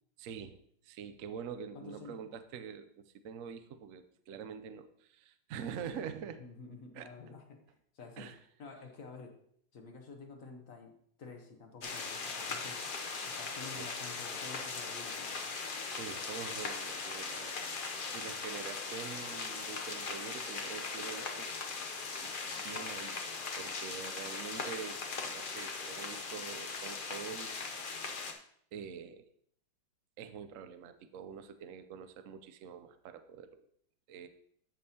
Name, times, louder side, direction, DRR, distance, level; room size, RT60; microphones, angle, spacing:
voice 1, 0.2-0.6 0.8-6.4 6.9-7.1 8.2-8.4 13.7-13.9 15.9-17.6 18.1-21.5 22.2-23.2 23.6-27.5 28.7-29.3 30.2-33.6 34.1-34.3, right 7 dB, 70° right, 9 dB, 0.7 m, -45 dB
voice 2, 1.7-2.2 6.2-8.3 8.6-9.4 9.7-12.8 13.2-15.6, left 4 dB, 50° left, 4 dB, 1.2 m, -50 dB
sound 1, 11.8-28.3, left 4 dB, 85° left, 0.4 m, -39 dB
14.5 x 5.4 x 2.8 m, 0.66 s
omnidirectional pair, 2.1 m